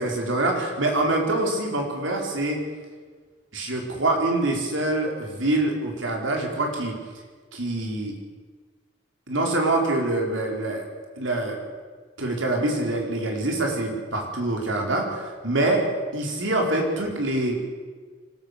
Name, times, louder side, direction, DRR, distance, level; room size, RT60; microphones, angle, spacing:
voice 1, 0.0-2.6 3.5-6.9 7.5-8.1 9.3-10.8 11.2-11.6 12.2-15.9 16.1-17.6, right 2 dB, 80° right, 1 dB, 4.7 m, -25 dB
24.5 x 13.5 x 8.5 m, 1.5 s
head